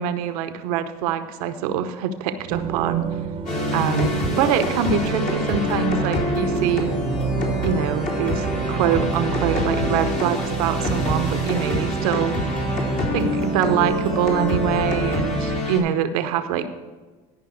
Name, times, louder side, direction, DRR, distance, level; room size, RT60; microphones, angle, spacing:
voice 1, 0.0-3.1 3.7-6.9 7.6-12.4 13.1-16.7, right 8 dB, 80° right, 9 dB, 0.9 m, -24 dB
sound 1, 2.5-15.6, right 5 dB, 30° right, 0.9 m, -29 dB
sound 2, 3.5-15.8, left 1 dB, 45° left, 3.2 m, -26 dB
12.5 x 5.5 x 6.4 m, 1.3 s
hypercardioid pair, 80°, 19 cm